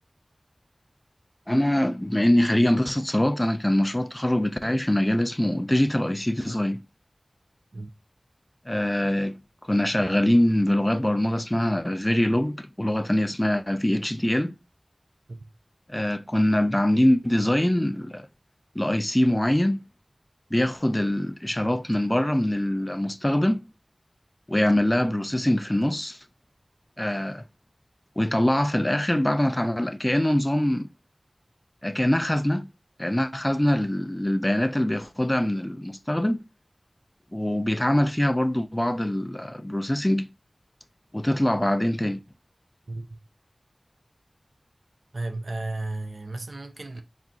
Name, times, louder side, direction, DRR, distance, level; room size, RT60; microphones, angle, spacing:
voice 1, 1.5-6.8 8.7-9.4 9.7-14.5 15.9-18.3 18.8-19.8 20.5-23.6 24.5-26.2 27.0-27.4 28.2-30.9 31.8-32.7 33.0-36.4 37.3-40.3 41.1-42.2, left 1 dB, 15° left, 0.4 m, -23 dB
voice 2, 42.9-43.2 45.1-47.0, right 2 dB, 80° right, 0.4 m, -34 dB
4.2 x 3.5 x 2.5 m
wide cardioid pair, 55°, 0 cm